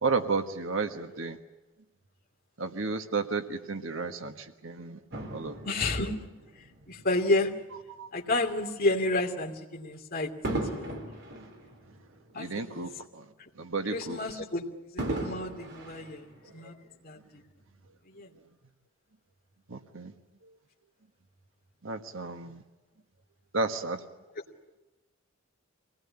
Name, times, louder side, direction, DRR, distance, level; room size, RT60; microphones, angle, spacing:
voice 1, 0.0-1.4 2.6-4.3 4.6-5.5 8.0-8.1 12.4-12.9 13.6-14.2 19.7-20.1 21.8-22.6 23.5-24.0, right 4 dB, 75° right, 8 dB, 1.4 m, -32 dB
Fireworks, 5.1-7.7 8.4-8.6 10.4-13.0 13.3-13.4 15.0-16.9 17.6-17.7, right 1 dB, 60° right, 3.6 m, -38 dB
voice 2, 5.6-6.3 6.9-7.5 8.1-10.3 10.7-11.0 12.3-12.9 13.9-14.7 14.9-16.8 17.0-17.2 18.1-18.3, left 2 dB, 45° left, 2 dB, 2.8 m, -30 dB
25.5 x 18.5 x 9.8 m, 1.1 s
head